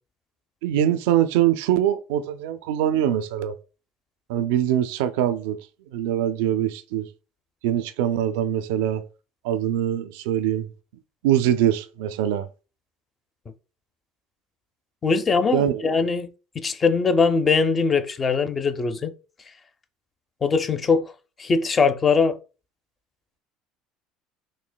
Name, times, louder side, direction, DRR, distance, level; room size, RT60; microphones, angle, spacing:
voice 1, 0.6-3.6 4.3-5.6 5.9-7.1 7.6-9.0 9.4-10.7 11.2-12.5 15.5-15.8, right 11 dB, 80° right, 0.3 m, -23 dB
voice 2, 15.0-19.1 20.4-21.1 21.4-22.4, left 4 dB, 30° left, 0.5 m, -21 dB
6.1 x 2.1 x 2.2 m
supercardioid pair, 90°, 0 cm